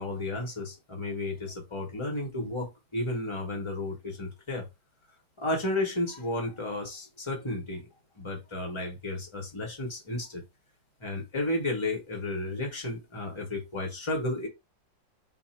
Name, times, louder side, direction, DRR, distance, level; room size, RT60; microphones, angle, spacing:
voice 1, 0.0-4.7 5.4-7.9 8.2-10.4 11.0-14.5, left 1 dB, 25° left, 0.7 m, -33 dB
3.5 x 2.2 x 4.3 m
omnidirectional pair, 2.1 m